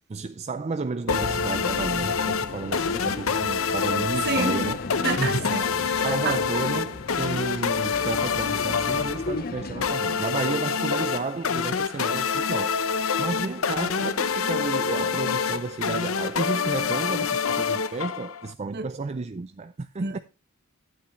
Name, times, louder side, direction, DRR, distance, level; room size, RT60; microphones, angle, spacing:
voice 1, 0.1-4.8 5.2-5.6 6.0-20.2, right 3 dB, 30° right, 0.4 m, -32 dB
sound 1, 1.1-18.5, left 6 dB, 75° left, 0.8 m, -26 dB
sound 2, 1.1-9.9, left 3 dB, 45° left, 0.6 m, -36 dB
voice 2, 4.2-4.6 5.0-6.4 18.7-18.9 20.0-20.2, right 4 dB, 50° right, 1.1 m, -30 dB
12.0 x 8.5 x 3.2 m
head